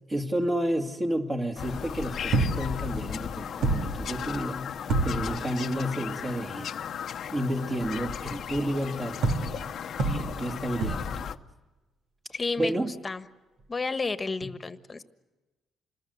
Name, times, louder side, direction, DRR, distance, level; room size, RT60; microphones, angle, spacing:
voice 1, 0.1-4.7 5.0-6.7 7.3-9.3 10.0-11.4 12.6-12.9, right 1 dB, 25° right, 1 dB, 2.2 m, -31 dB
Bird vocalization bird call bird song, 1.6-11.4, left 8 dB, 65° left, 0.9 m, -36 dB
sound 1, 2.3-2.8 3.2-3.3 3.6-4.2 4.9-5.4 9.2-9.7 10.0-10.5 10.8-11.2 13.6-13.7, right 2 dB, 80° right, 3.2 m, -27 dB
voice 2, 12.3-12.7 13.0-13.2 13.7-15.0, left 4 dB, 30° left, 11 dB, 1.4 m, -31 dB
27.5 x 21.0 x 8.0 m, 1.2 s
cardioid pair, 90°, 0 cm